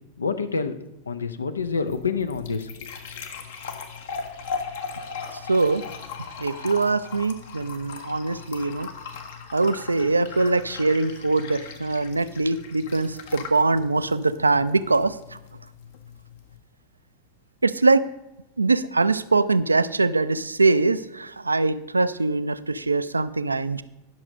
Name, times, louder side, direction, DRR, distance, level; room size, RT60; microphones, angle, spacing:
voice 1, 0.2-0.8 1.1-2.9, left 5 dB, 75° left, 10 dB, 0.7 m, -27 dB
sound 1, 1.6-16.6, left 5 dB, 55° left, 1.1 m, -38 dB
voice 2, 5.5-5.8 6.4-8.9 9.5-15.4 17.6-18.1 18.6-23.8, right 3 dB, 80° right, 14 dB, 0.4 m, -22 dB
10.5 x 6.3 x 5.2 m, 0.93 s
figure-of-eight pair, 90°, 0 cm